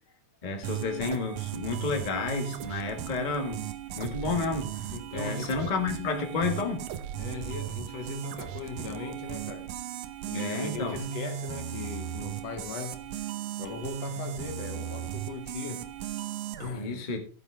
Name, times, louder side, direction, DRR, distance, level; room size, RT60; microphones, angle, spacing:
voice 1, 0.4-3.6 3.9-6.9 10.3-11.0 16.7-17.2, left 4 dB, 20° left, 1.3 m, -31 dB
sound 1, 0.6-16.7, right 10 dB, 80° right, 2.3 m, -37 dB
voice 2, 4.9-5.7 7.2-9.7 10.3-13.1 13.6-15.9 16.6-17.1, left 5 dB, 65° left, 2.1 m, -39 dB
15.0 x 7.5 x 3.4 m
omnidirectional pair, 3.3 m